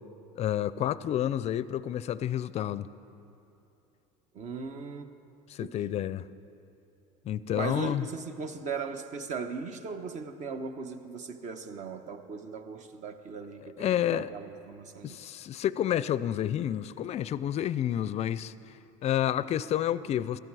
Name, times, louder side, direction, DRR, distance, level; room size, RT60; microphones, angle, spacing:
voice 1, 0.4-2.9 5.5-6.3 7.3-8.1 13.6-14.3 15.0-18.5 19.0-20.4, left 11 dB, 40° left, 0.4 m, -29 dB
voice 2, 4.3-5.1 5.6-6.0 7.5-15.3, right 5 dB, 45° right, 1.0 m, -38 dB
18.0 x 13.5 x 4.8 m
supercardioid pair, 105°, 17 cm